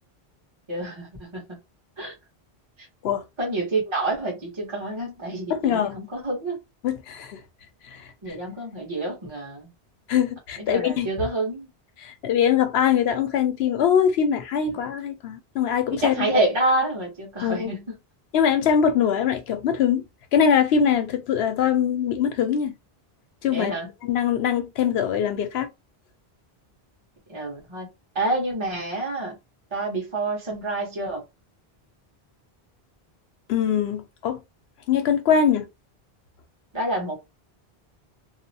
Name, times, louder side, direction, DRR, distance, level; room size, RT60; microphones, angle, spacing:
voice 1, 0.7-1.4 2.0-2.1 3.4-6.6 8.2-9.7 10.6-11.7 14.7-14.9 16.0-18.0 23.5-23.9 27.3-27.9 28.1-29.4 29.7-31.2 36.7-37.2, right 2 dB, 30° right, 1.1 m, -28 dB
voice 2, 5.5-6.0 6.8-7.4 7.8-8.4 10.1-11.1 12.0-16.3 17.4-17.7 18.3-20.0 20.3-22.8 23.4-23.8 24.0-25.7 33.5-34.4 34.9-35.7, left 8 dB, 85° left, 0.9 m, -22 dB
2.7 x 2.1 x 2.7 m
omnidirectional pair, 1.0 m